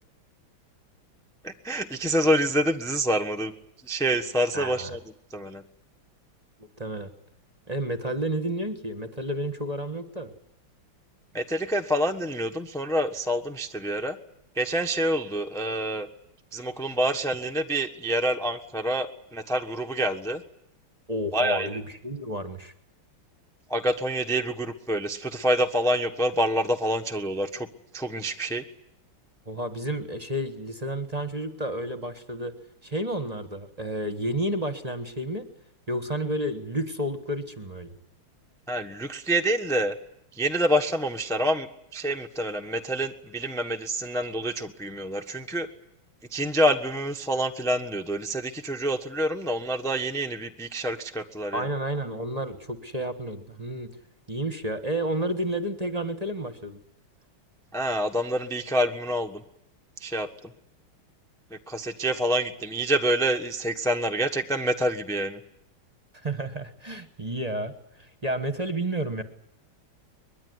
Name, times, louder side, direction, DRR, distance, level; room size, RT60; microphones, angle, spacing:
voice 1, 1.4-3.5 3.8-5.0 5.3-5.6 11.3-14.2 14.5-16.1 16.5-20.4 21.3-21.8 23.7-27.7 27.9-28.6 38.7-40.0 40.3-45.7 46.3-51.7 57.7-59.4 60.0-60.3 61.7-65.4, right 1 dB, ahead, 5 dB, 0.9 m, -27 dB
voice 2, 4.5-4.9 6.8-7.1 7.7-10.3 21.1-22.7 29.5-32.5 32.8-35.4 35.9-37.9 51.5-53.9 54.3-56.8 66.2-69.2, right 1 dB, 20° right, 9 dB, 1.3 m, -31 dB
23.5 x 21.5 x 9.6 m, 0.80 s
omnidirectional pair, 2.3 m